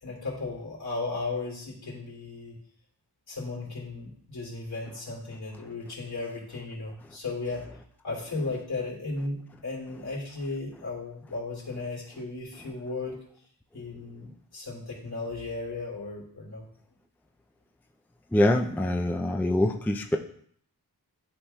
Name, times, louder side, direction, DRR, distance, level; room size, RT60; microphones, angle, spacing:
voice 1, 0.0-2.6 3.3-7.6 8.0-13.1 13.7-16.7, left 3 dB, 70° left, -3 dB, 2.8 m, -35 dB
voice 2, 18.3-20.2, left 1 dB, 5° left, 3 dB, 0.5 m, -24 dB
11.0 x 4.2 x 2.3 m, 0.62 s
wide cardioid pair, 65°, 38 cm